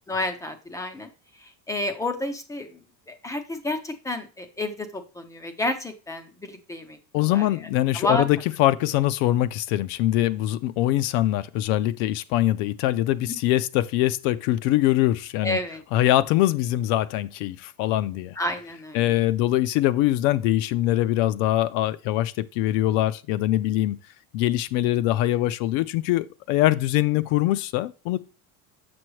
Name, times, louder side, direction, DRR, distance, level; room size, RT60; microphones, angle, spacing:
voice 1, 0.1-2.8 3.1-7.7 7.9-8.2 13.3-13.4 15.4-15.8 18.4-19.2, left 1 dB, 10° left, 0.3 m, -30 dB
voice 2, 7.1-15.6 15.9-18.4 18.9-24.0 24.3-28.2, left 14 dB, 70° left, 0.5 m, -23 dB
6.9 x 6.1 x 3.1 m
cardioid pair, 160°, 44 cm